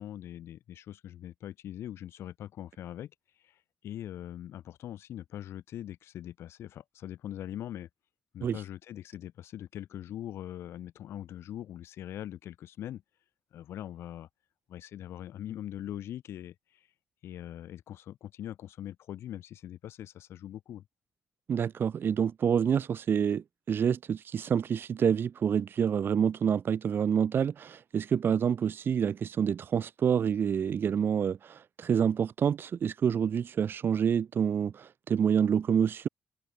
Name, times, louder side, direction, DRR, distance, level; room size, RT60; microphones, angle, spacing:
voice 1, 0.0-3.1 3.4-7.9 8.3-13.0 13.5-14.3 14.7-16.9 17.2-20.8, left 11 dB, 75° left, 1.3 m, -42 dB
voice 2, 21.5-36.1, right 7 dB, 55° right, 0.6 m, -27 dB
supercardioid pair, 60°, 4 cm